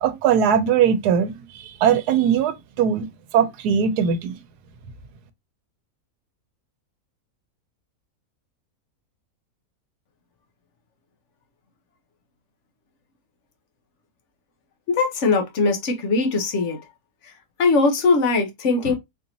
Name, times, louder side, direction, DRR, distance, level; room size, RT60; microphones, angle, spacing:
voice 1, 0.0-3.1 3.3-4.4, right 8 dB, 85° right, 1.2 m, -20 dB
voice 2, 14.9-16.8 17.6-18.9, left 3 dB, 55° left, 1.0 m, -20 dB
4.1 x 2.6 x 2.8 m
omnidirectional pair, 1.7 m